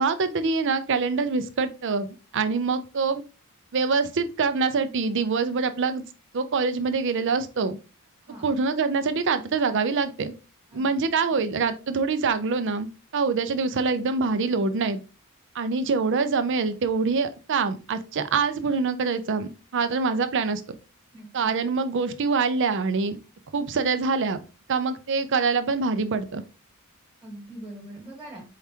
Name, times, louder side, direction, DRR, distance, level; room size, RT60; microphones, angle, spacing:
voice 1, 0.0-3.2 3.7-6.0 6.3-7.8 8.4-10.3 10.7-12.9 13.1-15.0 15.5-20.6 21.3-23.2 23.5-24.4 24.7-26.4, right 4 dB, 55° right, 11 dB, 0.5 m, -25 dB
voice 2, 21.1-21.5 27.2-28.4, right 1 dB, 5° right, -2 dB, 1.4 m, -42 dB
4.7 x 3.4 x 2.8 m, 0.31 s
head